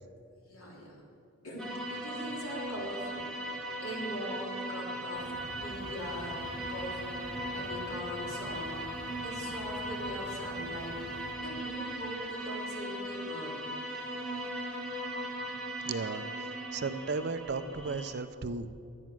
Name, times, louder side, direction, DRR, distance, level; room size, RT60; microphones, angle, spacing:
voice 1, 0.5-1.0 1.4-3.5 3.8-5.2 5.6-6.4 6.7-7.2 7.5-13.5, equal, 80° left, -3 dB, 3.1 m, -41 dB
sound 1, 1.6-18.1, right 1 dB, 5° left, 1.2 m, -38 dB
sound 2, 5.1-11.4, left 1 dB, 55° left, 1.5 m, -47 dB
voice 2, 15.9-16.2 16.7-18.7, right 4 dB, 50° right, 11 dB, 0.5 m, -34 dB
12.0 x 9.4 x 6.1 m, 2.6 s
head